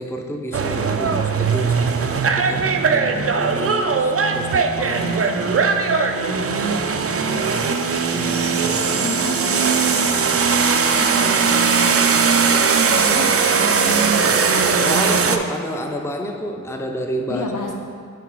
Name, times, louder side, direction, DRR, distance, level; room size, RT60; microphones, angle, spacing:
voice 1, 0.0-5.7 7.2-7.8 8.1-9.1 14.2-14.5 14.8-17.5, equal, 10° left, 3 dB, 0.5 m, -30 dB
sound 1, 0.5-15.4, right 5 dB, 45° right, 0.4 m, -19 dB
voice 2, 0.9-1.2 2.5-3.2 4.9-7.4 8.0-8.3 8.6-9.6 10.1-12.5 12.9-15.3 17.3-17.7, left 2 dB, 70° left, 0 dB, 0.9 m, -32 dB
5.9 x 4.0 x 4.6 m, 2.2 s
cardioid pair, 40°, 33 cm